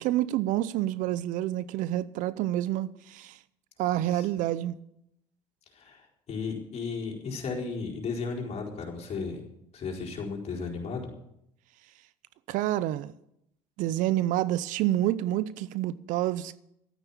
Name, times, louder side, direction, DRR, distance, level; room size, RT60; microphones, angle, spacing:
voice 1, 0.0-3.4 3.8-4.8 12.5-13.1 13.8-16.6, right 14 dB, 70° right, 0.6 m, -28 dB
voice 2, 5.7-9.4 9.7-11.1, left 4 dB, 50° left, 4.3 m, -35 dB
13.0 x 9.1 x 7.2 m
supercardioid pair, 75°, 14 cm